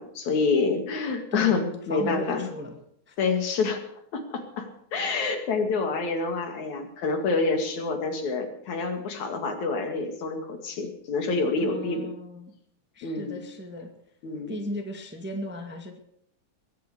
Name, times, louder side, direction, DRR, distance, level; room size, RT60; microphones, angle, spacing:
voice 1, 0.0-2.5 3.2-3.8 4.1-12.1 13.0-13.4 14.2-14.5, left 4 dB, 70° left, 5 dB, 3.5 m, -27 dB
voice 2, 1.3-2.7 3.1-3.2 11.6-12.5 12.9-13.9 14.5-16.0, left 1 dB, 5° right, 3 dB, 1.3 m, -36 dB
21.5 x 9.3 x 6.8 m, 0.71 s
omnidirectional pair, 3.5 m